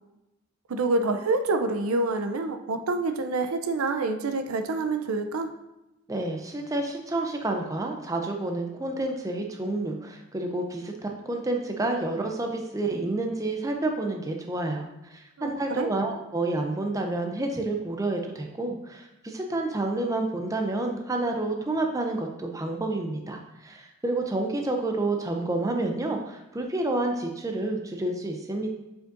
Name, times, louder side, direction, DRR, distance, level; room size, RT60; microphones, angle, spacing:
voice 1, 0.7-5.5 15.4-15.9, right 3 dB, 75° right, 8 dB, 0.5 m, -27 dB
voice 2, 6.1-14.8 15.1-28.7, right 2 dB, 15° right, 3 dB, 0.5 m, -29 dB
7.1 x 5.1 x 2.5 m, 0.93 s
head